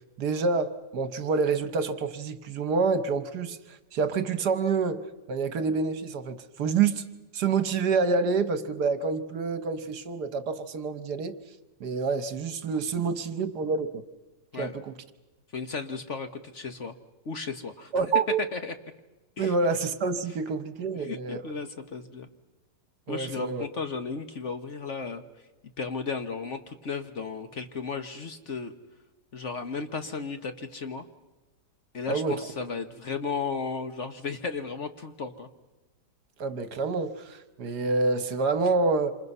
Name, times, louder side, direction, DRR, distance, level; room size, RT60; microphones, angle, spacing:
voice 1, 0.2-3.6 3.9-5.0 5.3-7.0 7.3-11.3 11.8-14.0 14.6-14.9 17.9-18.4 19.4-21.4 23.1-23.6 32.1-32.4 36.4-39.1, right 4 dB, 70° right, 11 dB, 1.6 m, -27 dB
voice 2, 15.5-16.9 17.2-17.9 18.5-18.7 19.4-19.5 20.9-22.3 23.1-25.2 25.8-28.7 29.3-31.1 31.9-35.5, left 4 dB, 45° left, 8 dB, 1.3 m, -34 dB
27.0 x 27.0 x 5.5 m, 1.1 s
omnidirectional pair, 1.9 m